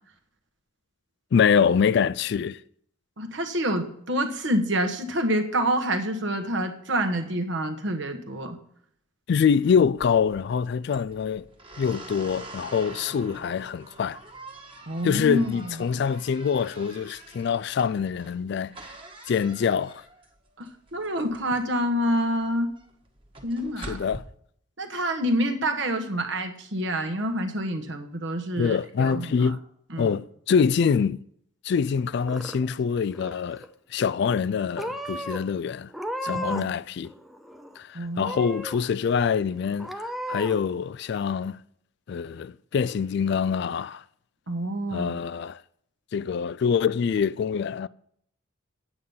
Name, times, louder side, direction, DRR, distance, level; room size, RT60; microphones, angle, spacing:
voice 1, 1.3-2.6 9.3-11.5 11.8-14.2 15.0-18.7 19.3-20.0 23.9-24.2 28.6-29.6 30.0-31.2 31.6-33.6 33.9-35.9 36.2-37.1 37.8-41.6 42.1-44.0 44.9-45.6 46.1-47.9, left 6 dB, 55° left, 0.3 m, -25 dB
voice 2, 3.2-8.6 14.9-15.8 20.6-22.7 23.4-24.0 24.8-29.5 29.9-30.1 36.3-36.7 37.9-38.3 44.5-45.1, equal, 60° right, 1.3 m, -27 dB
sound 1, 9.9-24.2, right 2 dB, 25° right, 1.5 m, -46 dB
Purr / Meow, 32.0-32.8 33.1-33.7 34.4-34.5 34.8-35.4 35.9-36.8 37.0-37.8 38.2-38.8 39.2-39.3 39.8-40.5, equal, ahead, 0.6 m, -34 dB
9.3 x 8.7 x 5.5 m
head